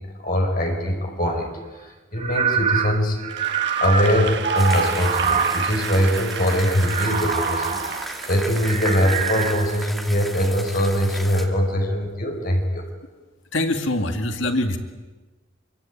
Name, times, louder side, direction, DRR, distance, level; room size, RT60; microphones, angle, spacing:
voice 1, 0.2-1.5 2.1-3.2 3.8-7.8 8.3-12.8, equal, 45° left, 2 dB, 5.3 m, -22 dB
sound 1, 1.2-1.4 2.2-5.7 6.6-8.1 8.6-9.9, right 6 dB, 35° right, 1.2 m, -25 dB
Applause / Crowd, 3.3-9.6, right 6 dB, 55° right, 1.3 m, -33 dB
sound 2, 4.5-11.5, equal, ahead, 2.8 m, -36 dB
voice 2, 13.5-14.8, left 1 dB, 70° left, 6 dB, 2.2 m, -23 dB
26.0 x 24.5 x 8.9 m, 1.2 s
head